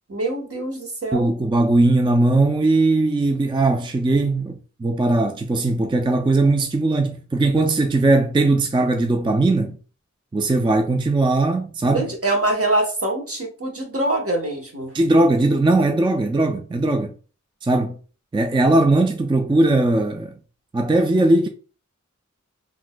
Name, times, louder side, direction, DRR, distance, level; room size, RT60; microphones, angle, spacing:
voice 1, 0.1-1.3 11.9-14.9, right 2 dB, 50° right, 1.0 m, -24 dB
voice 2, 1.1-9.8 10.3-12.1 14.9-17.1 17.6-18.0 18.3-20.3 20.7-21.5, right 2 dB, 15° right, 0.3 m, -19 dB
3.7 x 2.5 x 2.2 m
wide cardioid pair, 40°, 29 cm